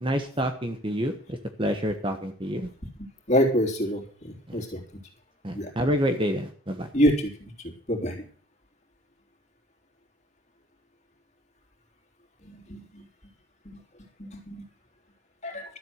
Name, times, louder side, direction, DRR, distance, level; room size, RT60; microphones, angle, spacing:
voice 1, 0.0-2.7 4.5-4.6 5.4-6.9, equal, 25° right, 7 dB, 1.1 m, -28 dB
voice 2, 3.3-4.8 5.5-5.7 6.9-8.2 12.4-13.0 14.2-14.6 15.4-15.6, equal, 35° left, 0 dB, 3.5 m, -26 dB
13.0 x 7.9 x 7.9 m, 0.43 s
head